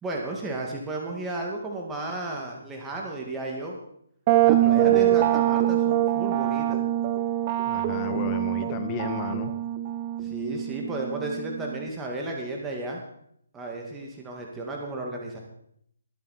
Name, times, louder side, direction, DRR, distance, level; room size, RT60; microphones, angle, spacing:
voice 1, 0.0-3.8 4.4-6.8 10.2-13.0 13.5-15.4, right 2 dB, 10° right, -1 dB, 2.2 m, -33 dB
sound 1, 4.3-11.9, right 13 dB, 30° right, 0.8 m, -24 dB
voice 2, 4.6-5.2 7.6-9.5, left 8 dB, 25° left, 6 dB, 1.7 m, -34 dB
22.0 x 8.6 x 4.4 m, 0.70 s
hypercardioid pair, 150°, 0 cm